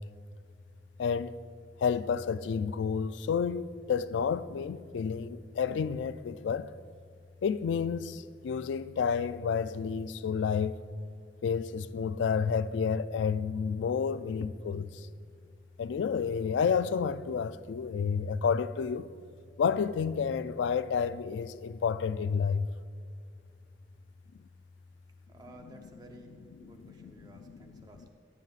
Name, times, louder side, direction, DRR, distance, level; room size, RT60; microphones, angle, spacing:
voice 1, 1.0-1.4 1.8-6.7 7.4-10.8 11.4-15.1 15.8-19.1 19.6-22.7 26.6-27.8, left 6 dB, 85° left, 0.3 m, -30 dB
voice 2, 25.3-28.1, right 1 dB, 20° right, 0.8 m, -53 dB
15.0 x 9.4 x 2.4 m
head